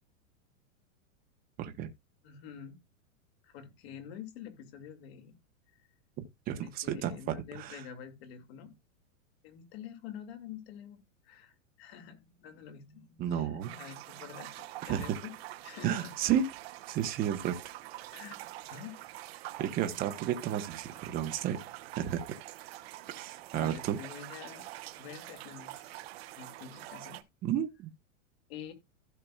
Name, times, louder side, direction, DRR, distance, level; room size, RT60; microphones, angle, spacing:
voice 1, 1.6-1.9 6.5-7.8 13.2-13.7 14.9-15.0 15.8-16.5 16.9-17.7 19.6-21.6 21.9-22.2 23.1-24.0 27.4-27.9, right 10 dB, 20° right, 1.0 m, -32 dB
voice 2, 2.2-2.8 3.4-5.4 6.6-8.7 9.4-11.0 11.2-15.3 15.6-16.1 18.1-18.4 18.7-19.1 19.7-20.0 23.5-24.6 25.0-26.0 26.4-27.2 28.5-28.7, left 8 dB, 45° left, 2.5 m, -47 dB
sound 1, 13.6-27.2, right 16 dB, 50° right, 0.9 m, -46 dB
15.5 x 5.8 x 2.4 m
supercardioid pair, 160°, 41 cm